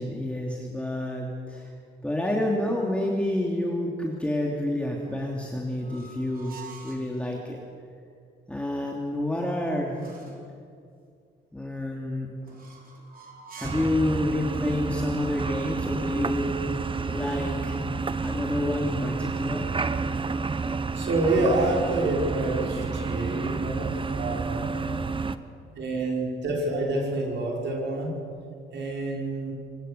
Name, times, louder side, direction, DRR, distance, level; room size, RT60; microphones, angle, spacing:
voice 1, 0.0-1.7 2.0-7.6 8.5-10.0 11.5-12.3 13.5-17.8 18.2-19.7, left 1 dB, 5° left, -1 dB, 2.9 m, -29 dB
sound 1, 4.9-7.1 9.1-10.5 12.4-14.0, right 5 dB, 45° right, 4.3 m, -47 dB
sound 2, 13.6-25.4, right 4 dB, 25° right, 1.0 m, -30 dB
voice 2, 20.9-24.7 25.8-28.2 28.7-29.5, right 2 dB, 65° right, -1 dB, 5.9 m, -27 dB
24.5 x 19.0 x 6.9 m, 2.3 s
cardioid pair, 90°, 20 cm